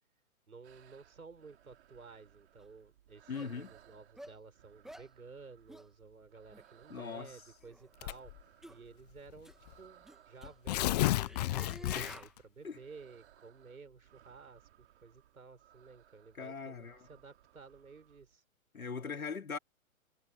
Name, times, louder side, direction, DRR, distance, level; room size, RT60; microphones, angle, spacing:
voice 1, 0.5-8.3 8.7-11.3 11.6-14.6 15.0-18.4, right 4 dB, 80° right, 6.9 m, -54 dB
sound 1, 0.6-18.4, right 11 dB, 50° right, 6.7 m, -64 dB
sound 2, 2.6-2.7 3.3-3.5 4.2-4.4 4.8-5.1 5.7-5.9 6.5-6.7 7.6-7.9 8.6-8.8 9.4-9.6 10.0-12.3, right 1 dB, ahead, 2.0 m, -50 dB
voice 2, 3.3-3.7 6.9-7.3 11.9-12.2 12.6-12.8 16.3-17.1 18.7-19.6, left 5 dB, 80° left, 3.0 m, -40 dB
Tearing, 8.0-8.4 9.3-9.4 9.7-9.8 10.4-12.4, left 16 dB, 30° left, 0.8 m, -32 dB
figure-of-eight pair, 130°, 42 cm